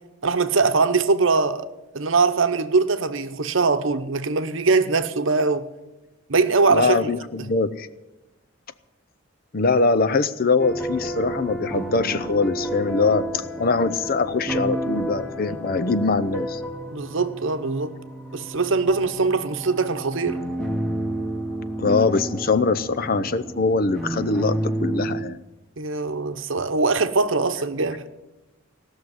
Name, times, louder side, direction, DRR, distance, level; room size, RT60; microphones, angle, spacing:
voice 1, 0.2-1.7 1.9-5.7 6.3-7.0 15.5-15.6 16.9-17.9 18.3-20.4 25.8-28.1, right 4 dB, 65° right, 0.9 m, -22 dB
voice 2, 6.7-7.9 9.5-16.6 21.8-25.4, left 4 dB, 45° left, 0.6 m, -22 dB
sound 1, 10.6-25.2, right 1 dB, 5° left, 1.3 m, -30 dB
17.0 x 6.4 x 9.7 m
head